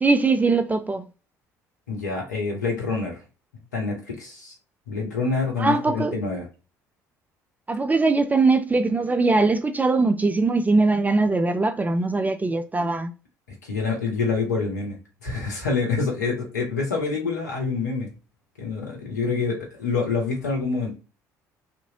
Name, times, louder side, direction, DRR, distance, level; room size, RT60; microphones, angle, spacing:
voice 1, 0.0-1.1 5.6-6.1 7.7-13.1, right 3 dB, 20° right, 0.3 m, -21 dB
voice 2, 1.9-3.2 3.7-4.5 4.9-6.5 13.6-15.0 15.2-18.1 18.6-20.9, left 4 dB, 85° left, 0.8 m, -26 dB
2.8 x 2.6 x 2.7 m
figure-of-eight pair, 55°, 9 cm